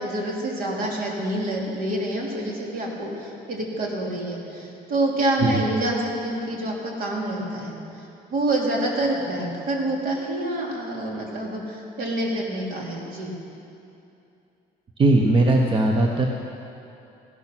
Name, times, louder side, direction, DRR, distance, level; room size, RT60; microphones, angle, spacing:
voice 1, 0.0-13.3, right 1 dB, 60° right, -1 dB, 3.1 m, -27 dB
voice 2, 15.0-16.3, right 2 dB, 30° right, 2 dB, 1.0 m, -19 dB
15.5 x 12.0 x 6.1 m, 2.7 s
cardioid pair, 110°, 17 cm